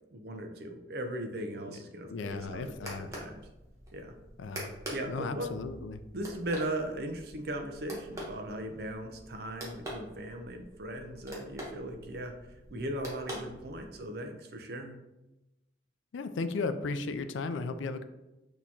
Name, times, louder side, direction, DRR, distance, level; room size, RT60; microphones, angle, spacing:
voice 1, 0.1-3.4 3.9-4.1 4.9-5.5 6.1-15.0, right 1 dB, 55° right, 4 dB, 0.6 m, -38 dB
voice 2, 2.1-3.1 4.4-4.7 5.1-6.0 16.1-18.0, left 3 dB, 90° left, 10 dB, 0.4 m, -35 dB
sound 1, 2.1-14.1, equal, 15° right, 1.0 m, -45 dB
6.3 x 2.9 x 2.8 m, 1.0 s
head